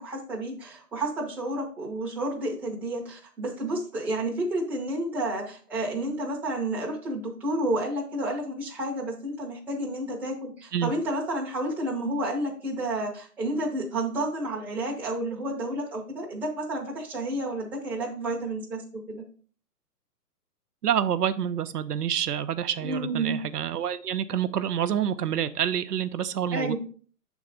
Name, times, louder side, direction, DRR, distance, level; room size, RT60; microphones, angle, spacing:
voice 1, 0.0-18.8 19.1-19.2 22.8-23.4 26.5-26.8, right 1 dB, 5° right, -4 dB, 0.6 m, -30 dB
voice 2, 20.8-26.8, right 9 dB, 75° right, 11 dB, 0.6 m, -27 dB
6.3 x 3.5 x 4.8 m, 0.43 s
figure-of-eight pair, 130°, 47 cm